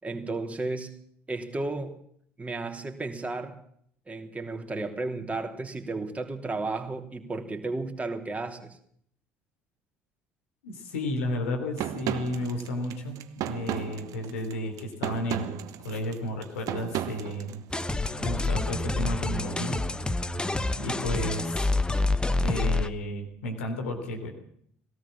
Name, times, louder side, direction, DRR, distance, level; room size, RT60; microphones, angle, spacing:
voice 1, 0.0-1.0 1.3-2.0 2.4-3.6 4.1-8.8, right 3 dB, 20° right, 3.3 m, -33 dB
voice 2, 10.6-13.2 13.4-17.6 18.2-19.8 20.8-21.7 22.4-24.3, left 1 dB, 75° left, 3.7 m, -33 dB
sound 1, 11.8-18.1, right 11 dB, 55° right, 1.4 m, -35 dB
sound 2, 17.7-22.9, left 2 dB, 10° left, 1.4 m, -27 dB
20.5 x 17.5 x 7.3 m
figure-of-eight pair, 55°, 7 cm